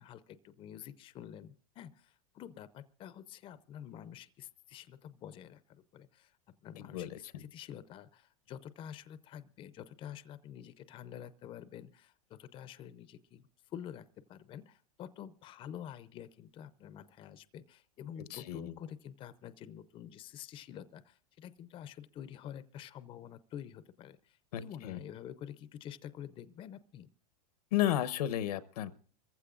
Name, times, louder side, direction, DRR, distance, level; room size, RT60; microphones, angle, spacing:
voice 1, 0.0-6.4 6.6-27.1, left 10 dB, 25° left, 0.6 m, -48 dB
voice 2, 6.8-7.4 18.3-18.7 24.5-25.0 27.7-28.9, left 12 dB, 80° left, 1.0 m, -33 dB
26.0 x 15.0 x 2.4 m
supercardioid pair, 145°, 20 cm